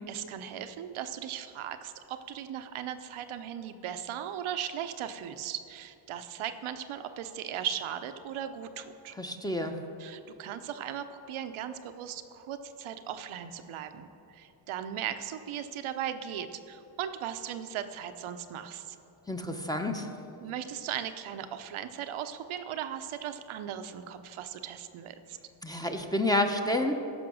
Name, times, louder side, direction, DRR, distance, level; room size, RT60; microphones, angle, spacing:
voice 1, 0.1-9.1 10.0-19.0 20.4-25.4, right 9 dB, 90° right, 9 dB, 0.8 m, -38 dB
voice 2, 9.2-9.7 19.3-20.1 25.6-26.9, left 1 dB, 10° left, 4 dB, 0.8 m, -29 dB
15.5 x 5.8 x 6.3 m, 2.8 s
cardioid pair, 100°, 47 cm